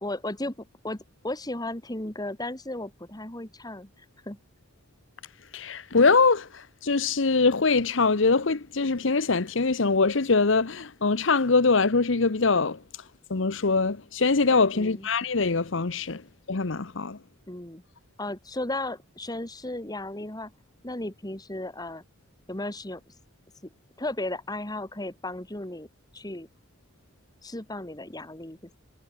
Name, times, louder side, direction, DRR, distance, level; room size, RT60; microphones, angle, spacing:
voice 1, 0.0-3.9 4.3-4.4 14.7-15.1 17.5-17.8 18.2-20.5 20.8-22.0 22.5-23.0 24.0-25.9 26.1-26.5 27.4-28.8, left 1 dB, 20° left, 2.5 m, -35 dB
voice 2, 5.5-12.8 13.3-16.2 16.5-17.2, left 4 dB, 65° left, 1.0 m, -23 dB
head